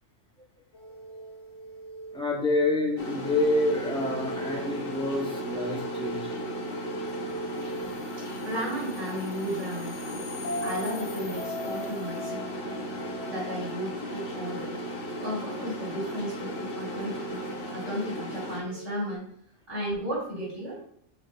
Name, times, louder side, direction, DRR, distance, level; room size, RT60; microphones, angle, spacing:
sound 1, 0.7-19.1, right 1 dB, 80° left, 1.5 m, -40 dB
voice 1, 2.1-6.4, left 2 dB, 5° left, -2 dB, 1.4 m, -27 dB
sound 2, 3.0-18.6, equal, 55° left, 1.3 m, -36 dB
voice 2, 8.2-12.5 13.2-14.9 15.2-17.4 17.7-19.3 19.7-20.8, equal, 70° right, -9 dB, 3.0 m, -34 dB
5.8 x 4.9 x 4.1 m, 0.66 s
omnidirectional pair, 1.2 m